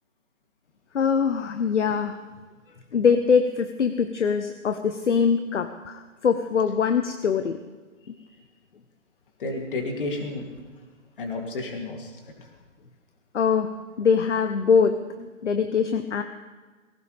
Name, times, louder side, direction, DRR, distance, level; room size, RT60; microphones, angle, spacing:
voice 1, 0.9-2.2 2.9-7.6 13.3-16.2, left 6 dB, 60° left, 8 dB, 1.1 m, -23 dB
voice 2, 9.4-10.5 11.2-12.1, left 2 dB, 40° left, 2 dB, 3.0 m, -31 dB
19.5 x 17.0 x 3.5 m, 1.4 s
hypercardioid pair, 155°, 40 cm